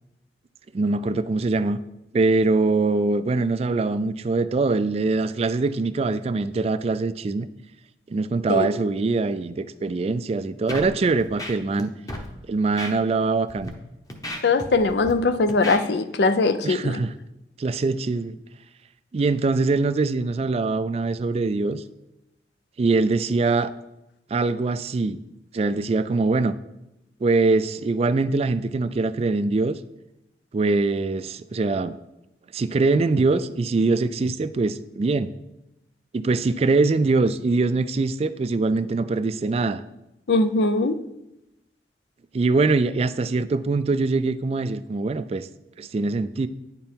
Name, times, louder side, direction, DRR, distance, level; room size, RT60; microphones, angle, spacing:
voice 1, 0.7-1.8 2.1-7.5 8.1-11.9 12.5-13.7 16.6-17.1 17.6-18.4 19.1-21.8 22.8-23.7 24.3-25.2 25.5-26.5 27.2-29.8 30.5-31.9 32.5-35.3 36.1-39.8 42.3-45.5 45.8-46.5, right 3 dB, 35° right, 13 dB, 0.3 m, -23 dB
Scratching (performance technique), 10.7-10.9 11.2-11.8 12.1-12.3 12.8-12.9 13.5-13.7 14.1-15.1 15.5-15.8, left 1 dB, 20° left, 0.9 m, -33 dB
voice 2, 14.4-17.0 40.3-41.0, left 3 dB, 70° left, 11 dB, 0.5 m, -21 dB
9.7 x 5.3 x 4.4 m, 0.91 s
head